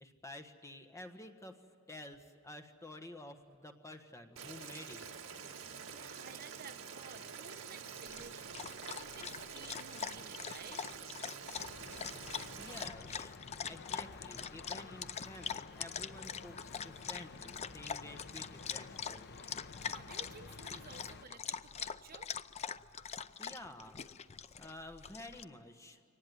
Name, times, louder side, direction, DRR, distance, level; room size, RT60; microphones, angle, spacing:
voice 1, 0.0-1.6 1.9-5.1 12.6-13.4 13.7-19.3 23.4-24.1 24.6-26.0, left 1 dB, 15° left, 6 dB, 1.4 m, -51 dB
Boiling, 4.4-12.9, right 6 dB, 65° right, 1.8 m, -47 dB
voice 2, 5.9-8.7 9.0-10.9 19.8-22.3, right 5 dB, 45° right, 8 dB, 1.0 m, -54 dB
Dog, 8.1-25.4, left 7 dB, 30° left, 0.5 m, -43 dB
sound 1, 11.5-21.2, left 4 dB, 50° left, 0.8 m, -52 dB
23.0 x 19.0 x 9.4 m, 2.4 s
head